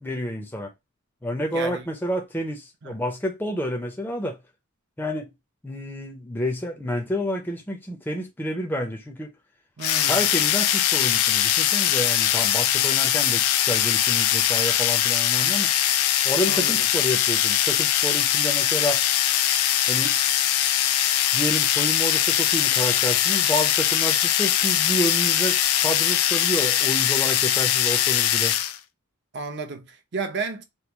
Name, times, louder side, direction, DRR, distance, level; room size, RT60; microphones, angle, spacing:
voice 1, 0.0-0.7 1.2-4.4 5.0-5.3 5.6-9.3 10.1-15.7 16.2-19.0 19.9-20.2 21.3-28.6, equal, 10° left, 0.5 m, -29 dB
voice 2, 1.5-1.9 2.8-3.0 9.8-10.2 16.5-16.8 29.3-30.6, right 4 dB, 50° right, 0.6 m, -32 dB
sound 1, 9.8-28.8, left 11 dB, 80° left, 0.4 m, -21 dB
3.0 x 2.3 x 3.3 m
head